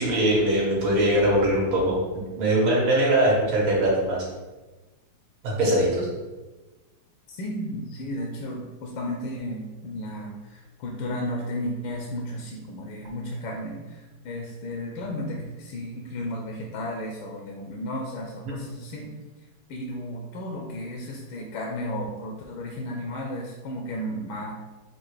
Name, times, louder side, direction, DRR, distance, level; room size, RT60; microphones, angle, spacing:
voice 1, 0.0-4.2 5.4-6.1, right 1 dB, 70° right, -4 dB, 1.8 m, -22 dB
voice 2, 7.3-19.1 19.7-24.5, equal, 75° left, 0 dB, 1.3 m, -33 dB
5.9 x 2.4 x 3.1 m, 1.2 s
omnidirectional pair, 2.4 m